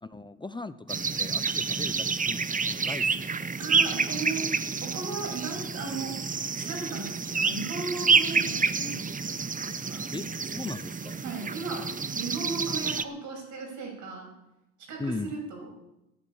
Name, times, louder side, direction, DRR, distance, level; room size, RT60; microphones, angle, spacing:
voice 1, 0.0-2.4 2.7-3.5 10.1-11.2 15.0-15.3, left 3 dB, 15° left, 13 dB, 0.7 m, -38 dB
sound 1, 0.9-13.0, right 5 dB, 25° right, 0.9 m, -28 dB
voice 2, 3.6-4.4 4.8-6.2 6.5-10.1 11.2-14.3 14.9-15.7, right 4 dB, 75° right, 0 dB, 7.2 m, -36 dB
11.5 x 11.0 x 8.8 m, 0.90 s
cardioid pair, 90°, 30 cm